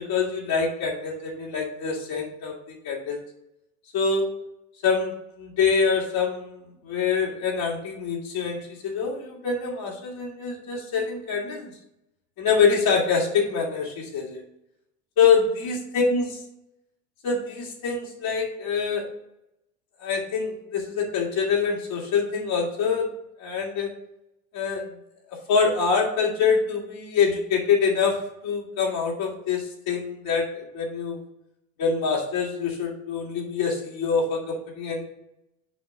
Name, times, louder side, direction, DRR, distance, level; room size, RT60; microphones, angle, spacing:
voice 1, 0.0-3.2 3.9-4.3 4.8-11.7 12.4-14.4 15.2-16.4 17.2-19.1 20.0-23.1 23.4-23.9 24.5-24.8 25.5-28.2 28.4-31.2 31.8-35.0, left 5 dB, 55° left, -2 dB, 2.5 m, -25 dB
6.3 x 5.1 x 6.3 m, 0.83 s
hypercardioid pair, 75°, 44 cm